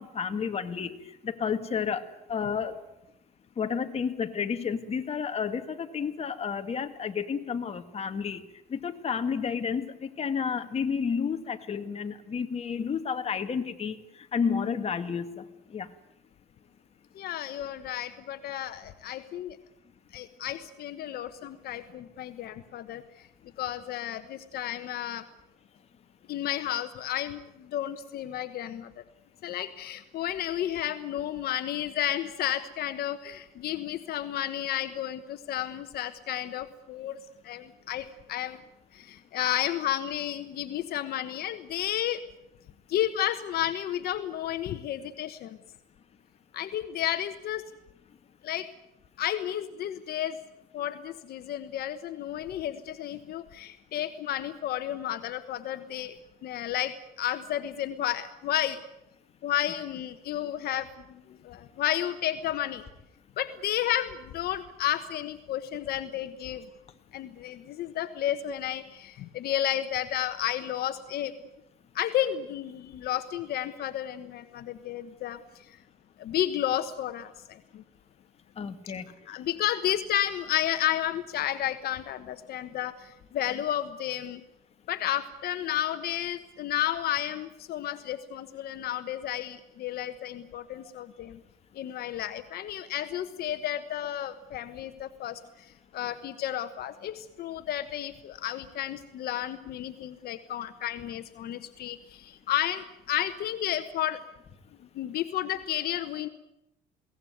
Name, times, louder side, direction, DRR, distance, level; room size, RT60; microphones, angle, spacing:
voice 1, 0.0-2.8 3.6-8.4 8.7-15.9 78.6-79.1, left 6 dB, 35° left, 7 dB, 2.0 m, -31 dB
voice 2, 17.1-19.6 20.1-23.3 23.6-25.3 26.3-29.0 29.4-37.2 37.4-38.6 38.9-42.2 42.9-45.6 46.5-47.6 48.4-48.7 49.2-50.4 50.7-56.1 56.4-58.8 59.4-62.8 63.4-66.7 67.1-71.3 71.9-75.8 76.2-77.8 79.3-84.4 84.9-91.4 91.7-104.2 104.9-106.3, left 11 dB, 70° left, 10 dB, 1.2 m, -32 dB
22.5 x 18.0 x 9.4 m, 0.90 s
cardioid pair, 110°, 17 cm